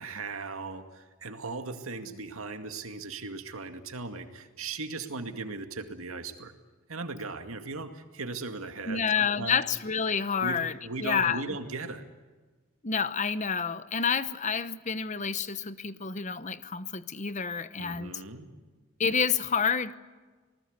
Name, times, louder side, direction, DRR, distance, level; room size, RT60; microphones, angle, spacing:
voice 1, 0.0-6.5 6.9-9.6 10.4-12.0 17.8-18.5, right 3 dB, 90° right, 6 dB, 2.3 m, -38 dB
voice 2, 8.9-10.7 11.0-11.4 12.8-18.2 19.0-20.0, left 6 dB, 35° left, 13 dB, 0.9 m, -29 dB
27.0 x 19.5 x 8.1 m, 1.3 s
head